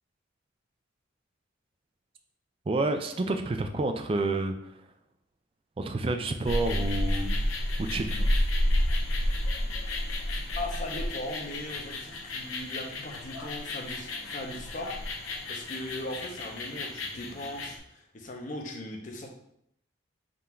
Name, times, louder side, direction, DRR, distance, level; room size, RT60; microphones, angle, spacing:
voice 1, 2.7-4.5 5.8-7.4 7.9-8.3, right 2 dB, 25° right, 6 dB, 0.3 m, -29 dB
sound 1, 6.4-17.8, left 1 dB, 90° left, 0.6 m, -31 dB
voice 2, 10.6-14.9 15.5-19.3, left 1 dB, 40° left, 2 dB, 0.6 m, -39 dB
3.7 x 2.5 x 4.3 m, 0.74 s
head